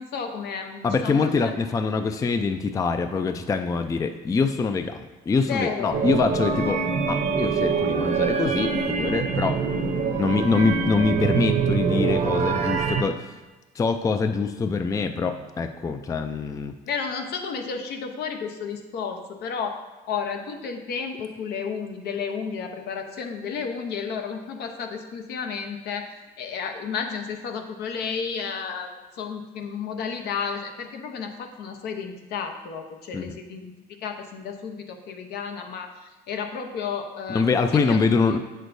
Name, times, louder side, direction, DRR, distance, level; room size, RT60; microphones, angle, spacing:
voice 1, 0.0-1.5 5.4-6.0 16.9-19.8 20.1-26.1 26.4-28.9 29.2-33.7 34.0-37.6 37.9-38.4, left 6 dB, 75° left, 5 dB, 0.8 m, -32 dB
voice 2, 0.8-9.6 10.2-13.4 13.8-16.7 33.1-33.4 37.3-38.4, left 4 dB, 20° left, 8 dB, 0.3 m, -24 dB
sound 1, 5.9-13.0, right 5 dB, 45° right, 0.7 m, -24 dB
7.8 x 6.3 x 2.6 m, 1.2 s
cardioid pair, 110°, 17 cm